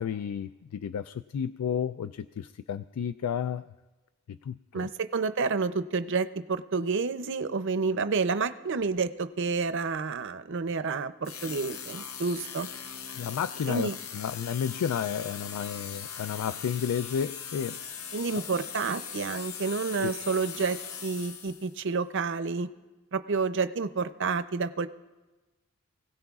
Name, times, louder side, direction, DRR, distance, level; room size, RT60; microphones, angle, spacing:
voice 1, 0.0-3.7 4.3-4.9 13.2-17.8 18.3-18.4 20.0-20.1, left 8 dB, 85° left, 14 dB, 0.3 m, -32 dB
voice 2, 4.7-12.7 13.7-14.0 18.1-22.7 23.1-24.9, right 4 dB, 55° right, 11 dB, 0.5 m, -29 dB
sound 1, 11.2-21.8, left 7 dB, 70° left, 0.8 m, -40 dB
24.5 x 16.5 x 2.4 m, 1.2 s
head